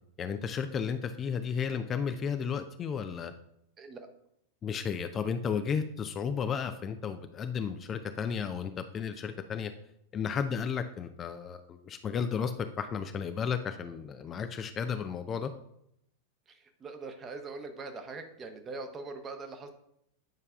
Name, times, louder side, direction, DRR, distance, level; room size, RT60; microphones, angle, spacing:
voice 1, 0.2-3.3 4.6-9.7 10.1-15.5, left 6 dB, 25° left, 8 dB, 0.4 m, -33 dB
voice 2, 3.8-4.1 16.5-19.7, right 3 dB, 25° right, 6 dB, 0.9 m, -42 dB
9.1 x 5.3 x 2.4 m, 0.75 s
figure-of-eight pair, 90°, 0 cm